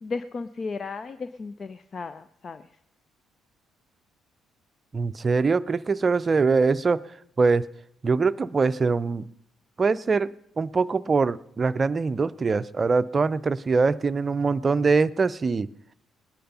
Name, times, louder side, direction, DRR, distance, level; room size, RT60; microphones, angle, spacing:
voice 1, 0.0-2.7, left 4 dB, 40° left, 13 dB, 0.5 m, -35 dB
voice 2, 4.9-7.0 7.4-7.7 8.0-9.3 9.8-10.3 10.6-15.7, right 4 dB, 35° right, 16 dB, 0.5 m, -23 dB
19.0 x 10.0 x 5.4 m, 0.75 s
figure-of-eight pair, 45°, 0 cm